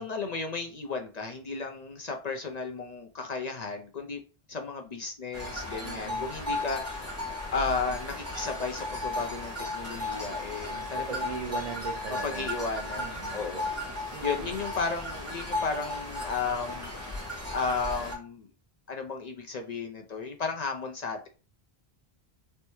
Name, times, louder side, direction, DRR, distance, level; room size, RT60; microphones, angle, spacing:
voice 1, 0.0-4.2 4.5-7.2 7.5-11.7 12.2-13.7 14.2-16.9 17.5-18.5 18.9-21.3, left 4 dB, 50° left, 4 dB, 0.5 m, -34 dB
sound 1, 5.3-18.2, left 2 dB, 15° right, 1.6 m, -35 dB
voice 2, 5.8-6.3 10.7-12.5 13.0-13.4 14.1-14.5, right 6 dB, 55° right, 2 dB, 0.4 m, -40 dB
3.3 x 3.2 x 3.0 m, 0.35 s
omnidirectional pair, 1.1 m